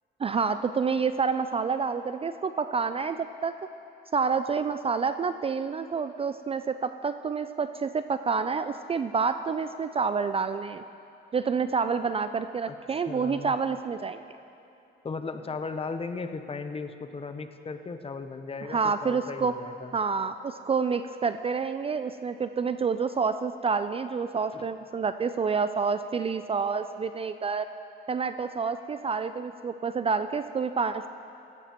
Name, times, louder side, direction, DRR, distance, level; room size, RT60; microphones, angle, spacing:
voice 1, 0.2-3.6 4.1-10.8 11.3-14.2 18.7-19.5 19.9-27.6 28.1-31.1, right 5 dB, 30° right, 10 dB, 0.3 m, -28 dB
voice 2, 12.7-13.5 15.0-20.0 24.5-24.6, left 4 dB, 30° left, 8 dB, 0.8 m, -37 dB
17.0 x 14.0 x 3.0 m, 2.7 s
cardioid pair, 90°, 20 cm